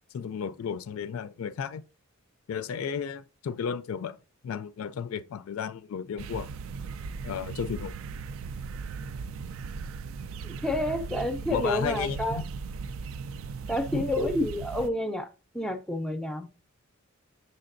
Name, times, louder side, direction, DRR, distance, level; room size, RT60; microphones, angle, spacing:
voice 1, 0.1-1.8 2.5-4.2 4.4-6.5 7.2-7.9 11.5-12.4 13.9-14.1, left 7 dB, 75° left, 0.3 m, -33 dB
sound 1, 6.2-14.9, right 5 dB, 70° right, 0.3 m, -38 dB
voice 2, 10.4-12.4 13.7-15.3 15.5-16.5, left 1 dB, 5° left, 0.5 m, -29 dB
6.6 x 6.4 x 2.6 m
head